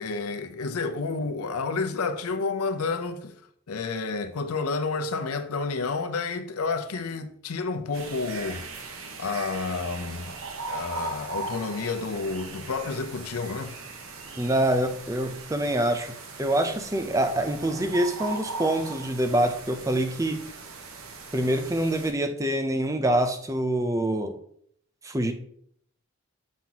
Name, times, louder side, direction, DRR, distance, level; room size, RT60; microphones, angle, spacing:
voice 1, 0.0-3.4 3.7-8.8 9.2-10.4 10.7-13.8, left 4 dB, 90° left, 0.6 m, -30 dB
sound 1, 7.9-22.1, right 3 dB, 75° right, 0.9 m, -39 dB
voice 2, 14.4-16.1 16.4-20.4 21.3-24.4 25.0-25.3, right 1 dB, 15° right, 0.5 m, -25 dB
7.4 x 5.7 x 2.9 m
head